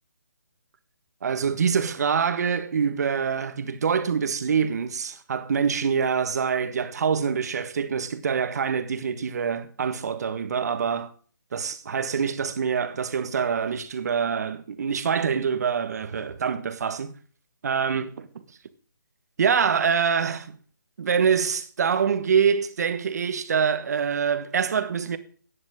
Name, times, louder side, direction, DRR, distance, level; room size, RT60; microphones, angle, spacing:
voice 1, 1.2-11.1 11.5-17.1 17.6-18.6 19.4-20.6 21.0-25.2, right 6 dB, 50° right, 1.5 m, -25 dB
15.0 x 10.5 x 3.7 m
hypercardioid pair, 155°, 11 cm